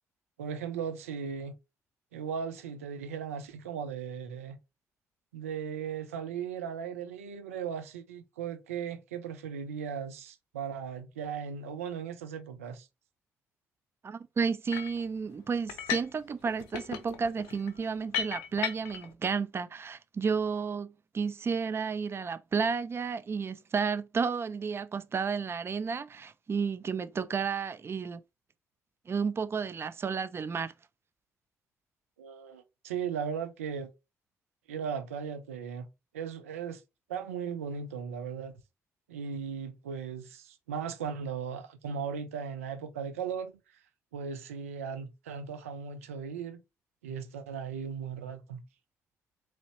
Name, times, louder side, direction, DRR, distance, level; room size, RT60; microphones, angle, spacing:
voice 1, 0.4-1.5 2.1-4.6 5.3-12.9 32.2-33.9 34.7-35.9 36.1-36.8 37.1-38.6 39.1-43.5 44.1-46.6 47.0-48.6, right 7 dB, 85° right, 0.5 m, -37 dB
voice 2, 14.0-28.2 29.1-30.7, right 5 dB, 35° right, 0.4 m, -32 dB
sound 1, 14.7-15.0 15.7-16.2 16.5-19.1, left 9 dB, 75° left, 0.5 m, -36 dB
4.1 x 3.0 x 2.9 m
hypercardioid pair, 45°, 7 cm